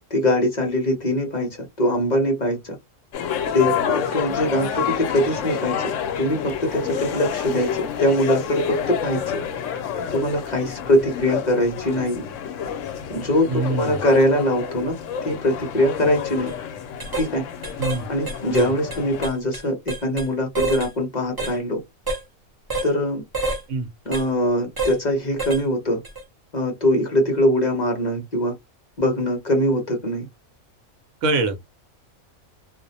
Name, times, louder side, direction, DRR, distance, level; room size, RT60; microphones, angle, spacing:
voice 1, 0.0-2.8 3.5-9.4 10.1-12.2 13.1-15.0 15.2-16.5 17.1-17.4 18.1-21.8 22.8-23.2 24.1-26.0 26.5-28.5 29.0-30.3, left 1 dB, 40° left, 0.7 m, -22 dB
sound 1, 3.1-19.3, left 8 dB, 70° left, 0.9 m, -29 dB
voice 2, 13.5-14.0 17.8-18.1 18.5-18.7 23.7-23.9 31.2-31.6, right 3 dB, 70° right, 1.0 m, -24 dB
sound 2, 16.4-16.5 17.0-17.3 17.6-18.0 18.3-20.3 20.5-20.9 21.4-21.6 22.1-22.2 22.7-22.9 23.3-23.6 24.1-24.3 24.8-25.0 25.4-25.6 26.0-26.2, right 3 dB, 35° right, 0.3 m, -28 dB
2.4 x 2.0 x 2.6 m
omnidirectional pair, 1.4 m